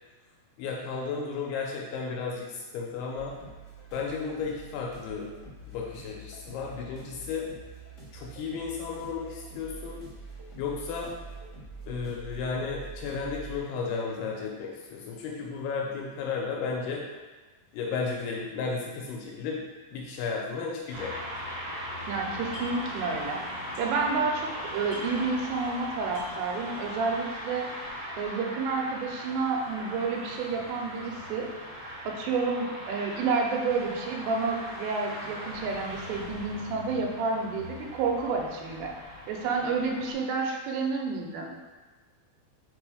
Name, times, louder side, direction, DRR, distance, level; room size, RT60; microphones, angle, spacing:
voice 1, 0.6-3.3 3.9-5.3 5.7-7.5 8.1-10.0 10.6-11.1 11.9-17.0 17.7-19.6 19.9-21.1, left 5 dB, 80° left, -2 dB, 2.5 m, -33 dB
sound 1, 3.2-15.9, right 2 dB, 60° left, 0.7 m, -46 dB
sound 2, 20.9-40.1, equal, 65° right, 1.3 m, -39 dB
sound 3, 21.3-22.0 22.3-22.9 23.2-24.2 24.5-24.6 24.8-25.8 26.0-26.5, left 2 dB, 40° right, 2.0 m, -49 dB
voice 2, 22.1-23.4 23.8-27.7 28.2-31.5 32.1-38.9 39.3-41.6, right 4 dB, 90° right, 1 dB, 2.9 m, -30 dB
6.1 x 3.3 x 4.8 m, 1.3 s
omnidirectional pair, 5.0 m